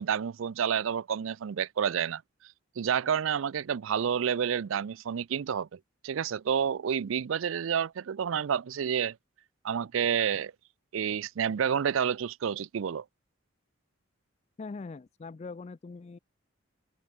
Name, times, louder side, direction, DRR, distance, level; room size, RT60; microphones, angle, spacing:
voice 1, 0.0-2.2 2.8-5.8 6.0-9.2 9.6-10.5 10.9-13.0, right 8 dB, 75° right, 0.4 m, -29 dB
voice 2, 14.6-16.2, left 4 dB, 30° left, 0.3 m, -42 dB
head